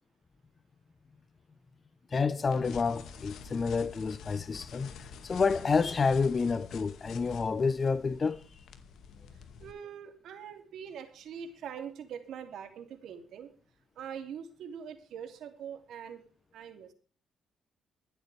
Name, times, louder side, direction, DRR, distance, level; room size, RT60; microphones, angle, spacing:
voice 1, 2.1-8.4, left 4 dB, 35° left, 0.9 m, -29 dB
sound 1, 2.5-9.7, left 6 dB, 75° left, 2.1 m, -48 dB
voice 2, 9.3-13.5 14.0-16.2 16.5-16.9, right 8 dB, 75° right, 2.8 m, -43 dB
24.0 x 8.1 x 3.4 m
cardioid pair, 90°, 0 cm